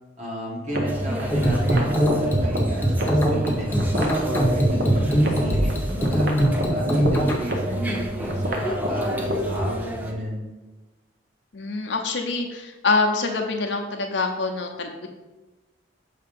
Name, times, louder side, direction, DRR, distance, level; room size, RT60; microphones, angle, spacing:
voice 1, 0.2-6.3 6.7-10.4, right 1 dB, 40° right, -4 dB, 1.4 m, -32 dB
sound 1, 0.7-9.7, right 1 dB, 55° right, 0.8 m, -29 dB
sound 2, 0.9-10.1, equal, 10° right, 0.5 m, -34 dB
sound 3, 1.3-7.3, equal, 10° left, 0.8 m, -21 dB
voice 2, 11.5-15.1, left 3 dB, 70° left, 3 dB, 0.7 m, -25 dB
6.5 x 2.9 x 5.2 m, 1.1 s
head